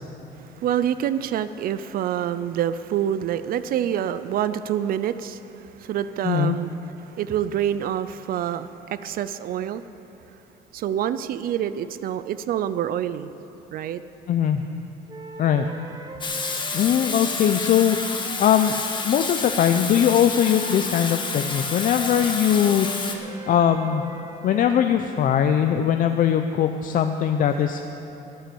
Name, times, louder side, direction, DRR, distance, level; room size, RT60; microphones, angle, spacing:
voice 1, 0.6-5.4 5.8-6.7 7.0-9.8 10.7-13.3 13.7-14.0, right 10 dB, 60° right, 13 dB, 0.4 m, -26 dB
voice 2, 6.2-6.6 14.3-14.6 15.4-15.7 16.7-18.0 18.4-18.7 19.0-22.9 23.5-24.0 24.4-27.8, left 9 dB, 55° left, 6 dB, 0.6 m, -20 dB
sound 1, 15.1-19.4 20.3-24.9, right 3 dB, 25° right, 0.9 m, -41 dB
Water tap faucet / Sink (filling or washing), 16.2-23.2, left 4 dB, 30° left, 1.3 m, -29 dB
14.0 x 8.9 x 6.9 m, 3.0 s
cardioid pair, 110°, 17 cm